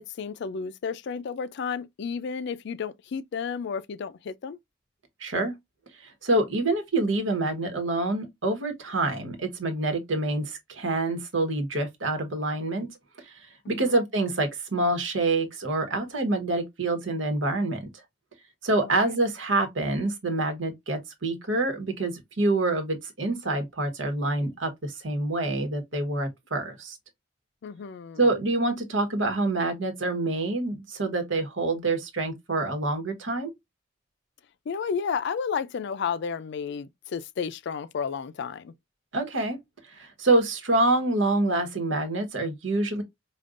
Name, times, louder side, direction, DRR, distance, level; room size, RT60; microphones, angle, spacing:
voice 1, 0.0-4.6 13.7-14.0 18.8-19.1 27.6-28.3 34.7-38.7, left 6 dB, 65° left, 0.4 m, -32 dB
voice 2, 5.2-5.5 6.2-12.9 13.7-17.9 18.6-27.0 28.2-33.5 39.1-39.6 39.9-43.0, right 2 dB, 80° right, 1.2 m, -26 dB
5.1 x 2.3 x 2.4 m
head